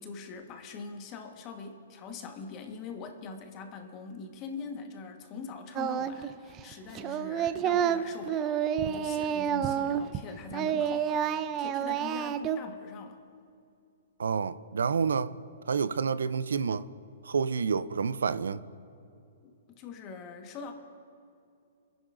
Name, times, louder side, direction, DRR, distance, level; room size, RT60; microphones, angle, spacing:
voice 1, 0.0-11.2 11.5-13.2 19.4-20.7, left 5 dB, 30° left, 1.3 m, -43 dB
Singing, 5.8-6.3 6.6-10.2 10.5-12.6, right 9 dB, 30° right, 0.5 m, -29 dB
voice 2, 14.2-15.4 15.7-16.9 17.2-18.6, right 5 dB, 85° right, 0.4 m, -29 dB
29.0 x 10.0 x 2.5 m
hypercardioid pair, 140°, 0 cm